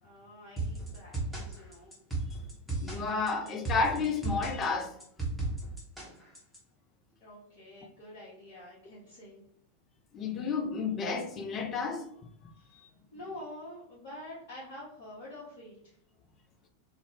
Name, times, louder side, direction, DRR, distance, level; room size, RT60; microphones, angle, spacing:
voice 1, 0.0-1.9 7.2-9.5 12.6-12.8 13.1-16.0, left 1 dB, 50° left, 0.8 m, -47 dB
sound 1, 0.6-6.6, right 2 dB, ahead, 0.8 m, -35 dB
voice 2, 2.8-4.9 6.1-6.2 10.1-12.1 12.4-12.5, left 4 dB, 25° left, 0.4 m, -31 dB
2.4 x 2.0 x 3.2 m
figure-of-eight pair, 90°, 0 cm